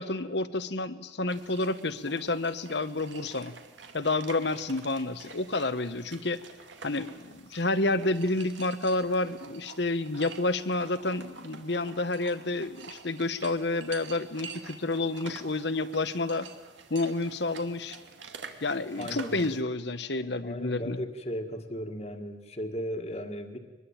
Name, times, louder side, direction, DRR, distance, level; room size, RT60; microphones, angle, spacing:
voice 1, 0.0-3.5 3.9-6.4 6.8-16.5 16.9-18.0 18.6-21.0, left 2 dB, 65° left, 12 dB, 1.2 m, -29 dB
sound 1, 1.3-19.6, right 5 dB, 85° right, 2.4 m, -48 dB
voice 2, 19.0-19.5 20.4-23.6, equal, 35° left, 6 dB, 1.9 m, -36 dB
24.0 x 21.0 x 8.9 m, 1.3 s
head